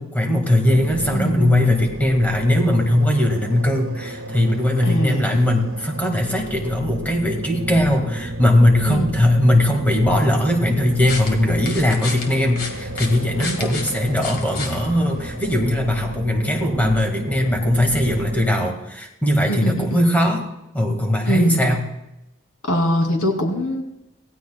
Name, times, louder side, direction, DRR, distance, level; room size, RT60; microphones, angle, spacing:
voice 1, 0.0-20.4 20.7-21.8, left 1 dB, 10° left, 2 dB, 1.9 m, -19 dB
sound 1, 0.7-18.7, equal, 85° right, 1.5 m, -31 dB
voice 2, 1.1-1.7 4.8-5.4 8.8-9.1 13.4-13.8 19.5-20.2 21.3-21.8 22.6-23.8, equal, 85° left, 2 dB, 2.8 m, -23 dB
sound 2, 10.7-15.6, left 3 dB, 45° left, 2.0 m, -32 dB
26.0 x 16.0 x 2.3 m, 0.89 s
head